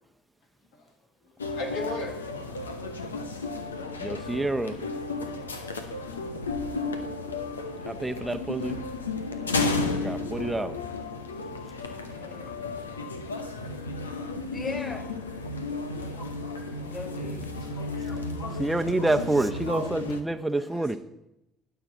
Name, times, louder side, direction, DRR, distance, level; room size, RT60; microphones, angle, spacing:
voice 1, 1.3-3.5 16.0-16.8 17.6-18.6 19.0-19.9 20.5-21.0, left 1 dB, 70° left, 3 dB, 1.9 m, -40 dB
sound 1, 1.4-20.2, left 3 dB, 85° left, 0.8 m, -33 dB
voice 2, 4.0-4.7 7.9-8.8 10.0-10.8 18.6-21.0, right 2 dB, 10° right, 7 dB, 0.9 m, -27 dB
voice 3, 11.8-12.5 14.5-15.1 16.8-17.5, left 3 dB, 35° left, 2 dB, 4.8 m, -38 dB
19.5 x 7.1 x 4.0 m, 0.85 s
figure-of-eight pair, 55°, 0 cm